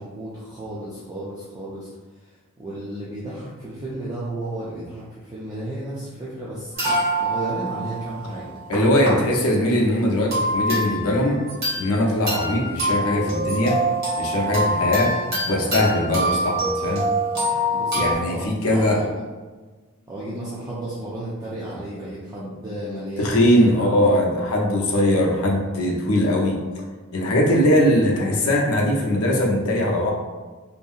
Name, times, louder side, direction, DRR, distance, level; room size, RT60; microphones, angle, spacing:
voice 1, 0.0-1.9 2.2-6.7 7.2-8.5 9.2-9.4 17.7-19.1 20.1-24.1, right 1 dB, 15° right, -8 dB, 0.3 m, -33 dB
sound 1, 6.7-9.1 9.6-9.8 10.3-12.0 12.3-18.1, right 1 dB, 45° right, 1.1 m, -25 dB
voice 2, 8.7-11.4 11.8-13.8 14.2-15.1 15.4-17.1 17.9-19.0 23.2-26.6 27.1-30.1, left 1 dB, 70° left, -1 dB, 0.6 m, -20 dB
2.7 x 2.6 x 2.4 m, 1.3 s
head